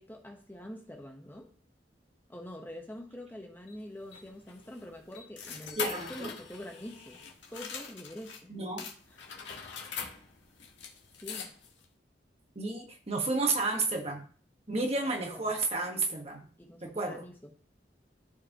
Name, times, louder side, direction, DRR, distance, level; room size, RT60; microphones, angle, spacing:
voice 1, 0.0-1.5 2.3-7.2 7.5-8.5 9.1-9.2 11.2-11.5 15.0-15.5 16.6-17.5, left 1 dB, 10° left, 1.0 m, -45 dB
sound 1, 3.7-8.4 8.8-11.8, left 6 dB, 85° left, 1.5 m, -43 dB
voice 2, 5.8-6.3 8.5-8.9 12.5-14.2 14.7-16.4 16.8-17.2, right 3 dB, 35° right, 1.3 m, -31 dB
13.0 x 4.8 x 2.9 m
head